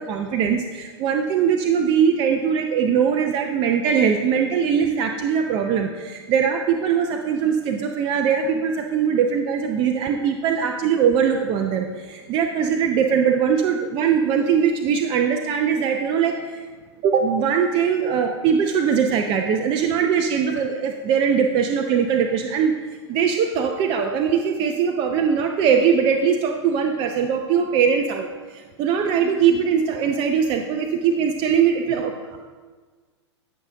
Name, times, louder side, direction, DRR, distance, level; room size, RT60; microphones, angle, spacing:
voice 1, 0.0-16.6 17.0-22.8 23.1-28.3 28.5-32.3, right 7 dB, 35° right, 4 dB, 0.5 m, -21 dB
9.4 x 6.3 x 2.8 m, 1.4 s
hypercardioid pair, 100°, 15 cm